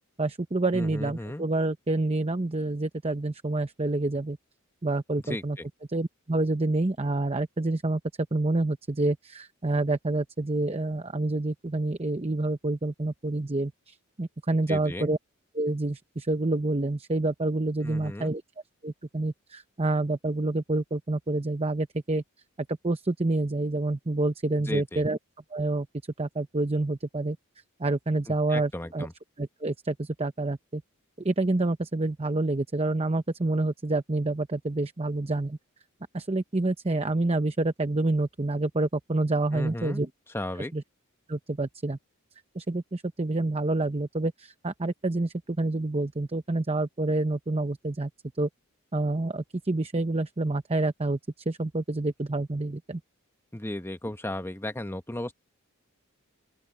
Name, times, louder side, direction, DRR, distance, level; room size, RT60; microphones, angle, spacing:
voice 1, 0.2-4.4 4.8-5.6 5.9-8.0 8.3-15.2 15.5-18.4 18.8-22.2 22.7-25.2 25.5-25.9 26.2-27.4 27.8-29.1 29.4-30.8 31.2-35.6 36.1-40.1 40.7-40.8 41.3-42.0 42.5-48.1 48.4-48.5 48.9-51.2 51.5-53.0, right 2 dB, 25° right, 0.8 m, -28 dB
voice 2, 0.7-1.4 5.2-5.7 14.7-15.1 17.8-18.4 24.7-25.1 28.3-29.1 39.5-40.0 40.3-40.7 53.5-55.3, left 1 dB, 10° left, 1.1 m, -35 dB
open air
head